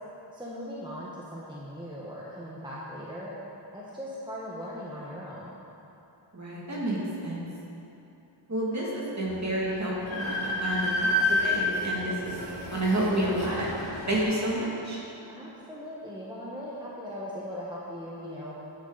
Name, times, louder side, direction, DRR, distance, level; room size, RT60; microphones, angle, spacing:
voice 1, 0.3-3.3 3.7-5.6 15.3-18.5, equal, 10° right, -6 dB, 1.3 m, -39 dB
voice 2, 6.3-7.4 8.5-12.4 12.7-13.7 14.1-15.0, right 1 dB, 35° right, -5 dB, 2.4 m, -29 dB
Train, 9.3-9.4 9.7-14.2, left 1 dB, 70° left, 2.3 m, -30 dB
11.0 x 8.6 x 4.0 m, 2.9 s
wide cardioid pair, 90°, 48 cm